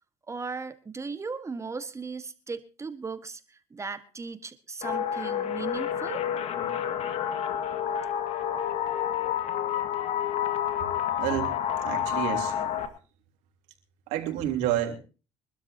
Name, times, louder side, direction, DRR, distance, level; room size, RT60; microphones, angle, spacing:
voice 1, 0.3-6.3, right 4 dB, 25° right, 12 dB, 1.6 m, -37 dB
sound 1, 4.8-12.9, left 9 dB, 60° left, 2.2 m, -29 dB
voice 2, 11.2-12.5 14.1-15.0, right 12 dB, 80° right, 3 dB, 3.5 m, -29 dB
24.0 x 12.5 x 2.8 m, 0.33 s
supercardioid pair, 85°, 12 cm